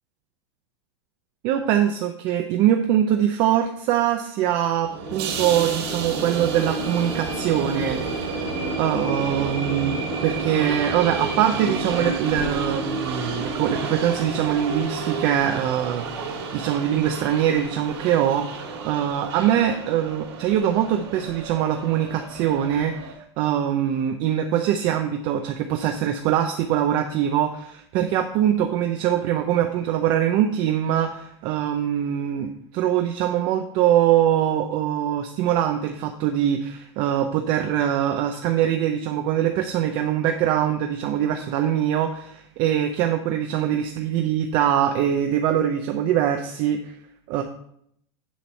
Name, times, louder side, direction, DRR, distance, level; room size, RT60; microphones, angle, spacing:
voice 1, 1.4-8.0 8.3-8.5 8.8-46.8 47.3-47.4, right 10 dB, 35° right, 5 dB, 0.6 m, -23 dB
sound 1, 4.8-23.1, right 3 dB, 70° right, 3.1 m, -30 dB
10.0 x 4.7 x 5.5 m, 0.69 s
supercardioid pair, 170°, 14 cm